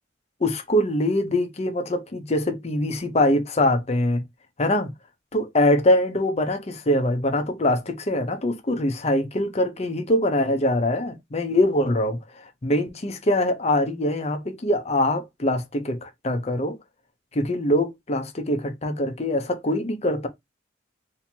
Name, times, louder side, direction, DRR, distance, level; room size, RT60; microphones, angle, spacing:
voice 1, 0.4-4.2 4.6-4.9 5.3-16.8 17.3-20.3, left 1 dB, 35° left, 0.7 m, -23 dB
2.8 x 2.7 x 4.3 m
head